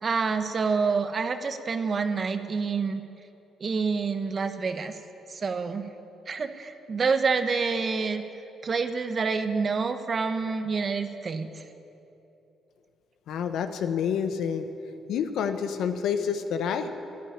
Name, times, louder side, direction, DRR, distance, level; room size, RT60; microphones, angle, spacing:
voice 1, 0.0-3.0 3.6-4.9 5.3-5.8 6.3-8.2 8.6-11.6, right 5 dB, 40° right, 8 dB, 1.1 m, -27 dB
voice 2, 13.3-14.7 15.1-16.9, left 7 dB, 80° left, 8 dB, 1.0 m, -28 dB
14.0 x 9.7 x 10.0 m, 3.0 s
cardioid pair, 90°, 0 cm